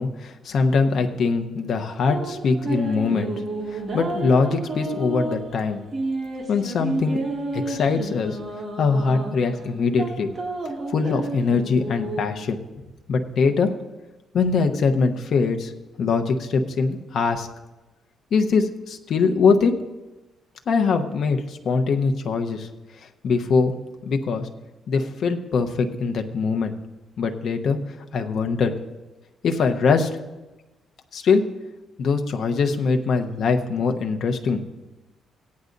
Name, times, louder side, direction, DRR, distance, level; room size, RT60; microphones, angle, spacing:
voice 1, 0.0-3.3 3.7-5.8 6.5-7.2 7.5-8.4 8.8-10.3 10.9-12.6 13.1-13.7 14.3-15.7 16.0-17.5 18.3-19.7 20.7-22.7 23.0-23.7 24.0-24.5 24.9-26.7 27.2-27.8 28.1-28.7 29.4-30.1 31.1-31.4 32.0-34.6, left 4 dB, 60° left, 5 dB, 0.9 m, -22 dB
sound 1, 1.9-12.2, right 2 dB, 35° right, 2.3 m, -31 dB
17.5 x 9.6 x 2.6 m, 1.1 s
cardioid pair, 90°, 0 cm